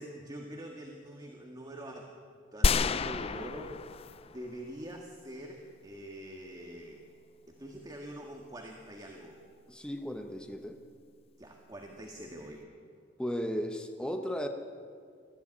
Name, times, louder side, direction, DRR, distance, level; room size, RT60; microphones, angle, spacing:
voice 1, 0.0-2.1 2.5-3.8 4.3-7.0 7.5-9.4 11.4-12.7, right 1 dB, 20° right, 1 dB, 1.7 m, -44 dB
sound 1, 2.6-4.6 4.9-5.0, left 4 dB, 30° left, 0.4 m, -29 dB
voice 2, 9.7-10.8 13.2-14.5, equal, 5° left, 5 dB, 1.0 m, -35 dB
20.5 x 14.0 x 9.7 m, 2.2 s
head